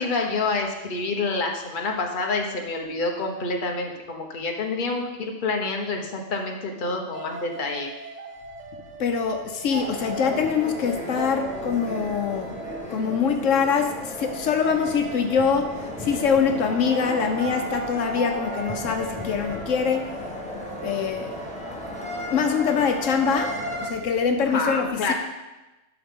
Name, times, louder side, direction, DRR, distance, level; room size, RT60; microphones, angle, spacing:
voice 1, 0.0-7.9 24.4-25.1, left 3 dB, 45° left, 2 dB, 1.1 m, -27 dB
sound 1, 7.1-13.4 14.0-21.8, right 4 dB, 45° right, 0.7 m, -40 dB
voice 2, 9.0-12.5 12.9-20.1 20.8-21.4 22.3-25.1, left 6 dB, 80° left, 5 dB, 1.1 m, -24 dB
sound 2, 9.7-23.9, left 1 dB, 5° left, 1.2 m, -34 dB
11.0 x 6.0 x 3.7 m, 1.1 s
omnidirectional pair, 1.3 m